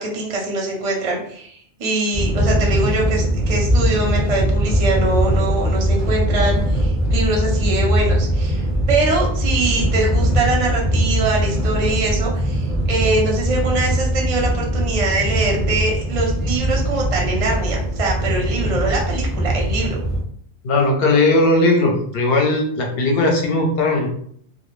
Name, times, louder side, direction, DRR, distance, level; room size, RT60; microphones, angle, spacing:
voice 1, 0.0-20.0, right 2 dB, 45° right, -1 dB, 0.5 m, -23 dB
sound 1, 2.1-20.2, equal, 25° left, 0.8 m, -20 dB
voice 2, 20.6-24.1, left 2 dB, 60° left, 1 dB, 0.8 m, -17 dB
2.1 x 2.1 x 3.0 m, 0.62 s
omnidirectional pair, 1.2 m